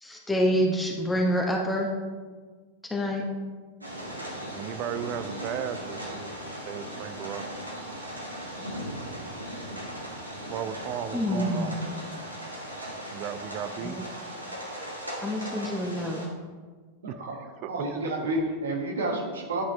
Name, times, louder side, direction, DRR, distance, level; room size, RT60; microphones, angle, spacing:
voice 1, 0.0-1.9 2.9-3.2 11.1-11.8 13.8-14.0 15.2-16.2, equal, 10° left, -1 dB, 0.8 m, -27 dB
sound 1, 3.8-16.3, equal, 85° right, 1.2 m, -38 dB
voice 2, 4.5-7.4 10.5-11.8 13.1-14.0 17.1-17.2 17.6-17.7, right 9 dB, 40° right, 11 dB, 0.4 m, -35 dB
voice 3, 17.0-17.4 17.7-19.6, right 2 dB, 65° right, 1 dB, 1.2 m, -30 dB
10.5 x 4.3 x 3.1 m, 1.5 s
figure-of-eight pair, 90°, 0 cm